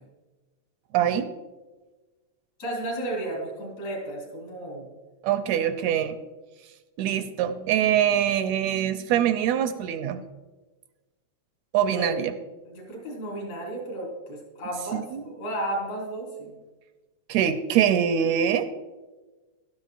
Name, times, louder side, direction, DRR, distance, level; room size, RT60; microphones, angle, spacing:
voice 1, 0.9-1.3 5.2-6.2 7.0-10.2 11.7-12.3 14.9-15.3 17.3-18.7, right 9 dB, 80° right, 10 dB, 1.7 m, -24 dB
voice 2, 2.6-4.9 11.9-12.1 12.7-16.5, right 1 dB, 70° left, -2 dB, 5.3 m, -33 dB
15.5 x 13.0 x 2.5 m, 1.3 s
omnidirectional pair, 3.4 m